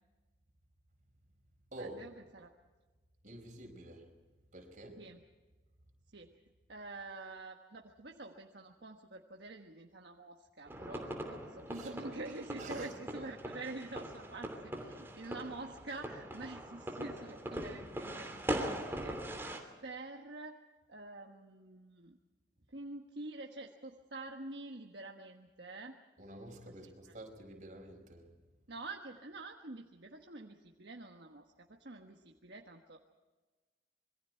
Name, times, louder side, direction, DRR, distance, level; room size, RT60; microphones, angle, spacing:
voice 1, 1.8-2.5 5.0-5.2 6.1-6.4 6.7-11.1 11.5-19.3 19.8-20.6 20.9-22.2 22.7-26.0 26.7-27.1 28.7-33.0, right 2 dB, 65° right, 2 dB, 1.4 m, -47 dB
voice 2, 3.2-4.1 4.5-5.0 11.7-11.9 12.6-12.9 26.2-28.2, right 1 dB, 45° right, 3 dB, 4.9 m, -49 dB
sound 1, 10.7-19.6, right 1 dB, 15° right, 2.8 m, -41 dB
26.5 x 22.5 x 4.6 m, 1.3 s
head